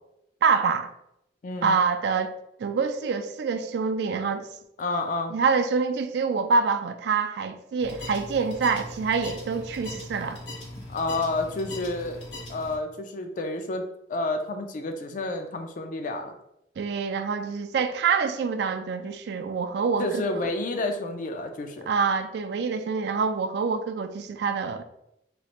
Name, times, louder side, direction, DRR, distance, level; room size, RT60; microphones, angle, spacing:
voice 1, 0.4-0.9 1.6-2.3 2.6-4.5 5.3-10.4 16.8-20.2 21.9-24.8, right 5 dB, 65° right, 0.3 m, -26 dB
voice 2, 1.4-1.8 4.8-5.3 10.9-12.2 12.5-16.3 20.0-21.9, left 2 dB, 45° left, 0.3 m, -30 dB
sound 1, 7.8-12.8, left 1 dB, 70° left, 0.9 m, -40 dB
3.1 x 2.9 x 2.4 m
head